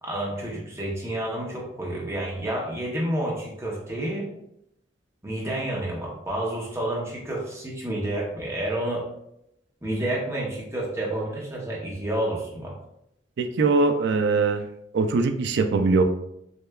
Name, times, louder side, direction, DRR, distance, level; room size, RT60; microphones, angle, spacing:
voice 1, 0.0-4.3 5.2-9.0 9.8-12.8, right 1 dB, 15° right, -3 dB, 0.7 m, -29 dB
voice 2, 13.4-14.7 14.9-16.0, right 3 dB, 65° right, 8 dB, 0.4 m, -21 dB
6.3 x 2.3 x 2.2 m, 0.79 s
head